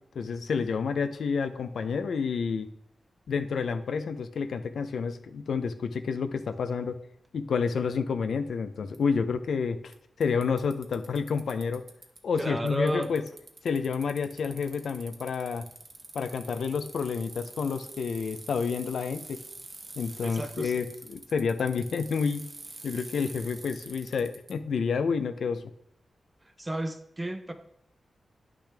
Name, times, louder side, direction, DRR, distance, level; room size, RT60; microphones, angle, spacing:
voice 1, 0.1-2.7 3.3-7.0 7.3-11.8 12.2-13.2 13.6-15.6 16.1-19.4 20.0-22.5 22.8-25.6, left 5 dB, 80° left, 9 dB, 0.6 m, -29 dB
Bicycle, 8.9-9.0 9.9-10.0 10.2-12.4 12.7-24.5, right 3 dB, 40° right, 0.9 m, -46 dB
voice 2, 12.3-13.1 20.2-20.7 26.6-27.5, right 1 dB, 15° right, 8 dB, 0.7 m, -32 dB
10.0 x 6.1 x 3.4 m, 0.73 s
wide cardioid pair, 140°, 0 cm